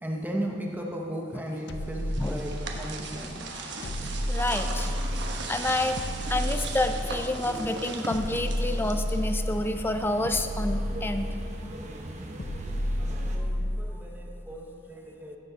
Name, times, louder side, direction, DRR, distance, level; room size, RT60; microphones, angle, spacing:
voice 1, 0.0-3.7 7.4-7.6 12.1-15.4, right 1 dB, 10° right, -1 dB, 0.8 m, -37 dB
sound 1, 1.7-3.0 3.8-5.5 6.0-7.4 8.1-9.7 10.2-11.6 12.4-14.0, equal, 60° left, 0.6 m, -31 dB
sound 2, 1.7-9.5, right 3 dB, 60° right, 1.0 m, -38 dB
voice 2, 4.0-5.0 5.5-6.0 6.3-11.3, left 1 dB, 10° left, 7 dB, 0.4 m, -29 dB
sound 3, 4.4-13.4, right 1 dB, 35° right, 0.9 m, -43 dB
15.0 x 7.0 x 3.9 m, 2.9 s
head